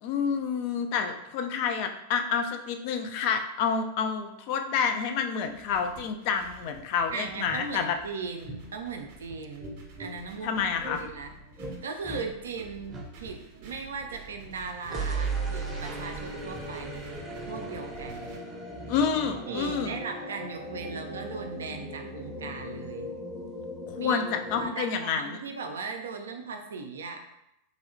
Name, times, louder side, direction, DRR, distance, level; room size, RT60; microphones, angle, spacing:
voice 1, 0.0-8.0 10.4-11.0 18.9-20.0 23.9-25.4, left 6 dB, 45° left, 6 dB, 0.3 m, -29 dB
sound 1, 5.5-18.4, right 3 dB, 50° right, 0.7 m, -49 dB
voice 2, 7.1-11.4 11.8-17.1 17.4-18.4 19.5-23.1 24.0-24.2 24.5-27.2, right 4 dB, 65° right, 4 dB, 0.4 m, -38 dB
sound 2, 7.4-7.6 8.4-8.6 9.6-10.1 10.8-11.0 11.6-11.8 12.0-12.2 12.9-13.1 14.9-24.7, right 2 dB, 15° right, 0.7 m, -37 dB
3.1 x 2.7 x 2.5 m, 0.84 s
figure-of-eight pair, 90°, 0 cm